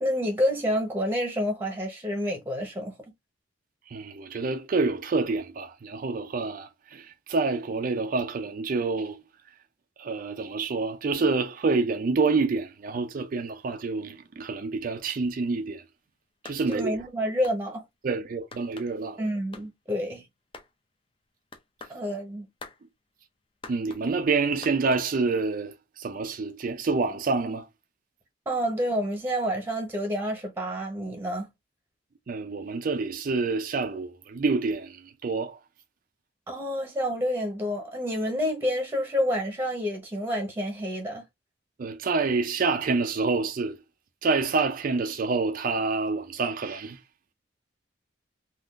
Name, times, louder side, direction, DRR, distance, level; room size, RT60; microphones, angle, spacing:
voice 1, 0.0-2.9 16.7-17.8 19.2-20.2 21.9-22.5 28.5-31.5 36.5-41.2, equal, 10° right, 0.8 m, -28 dB
voice 2, 3.9-9.2 10.0-15.8 16.4-16.9 18.0-19.2 23.7-27.7 32.3-35.6 41.8-43.8 44.2-47.0, right 4 dB, 45° right, 0.4 m, -27 dB
sound 1, 16.5-16.8 17.4-17.6 18.5-18.9 19.5-19.7 20.5-20.7 21.5-22.0 22.6-22.8 23.6-24.0 24.6-25.1, left 3 dB, 30° left, 0.5 m, -44 dB
3.6 x 2.4 x 2.4 m
head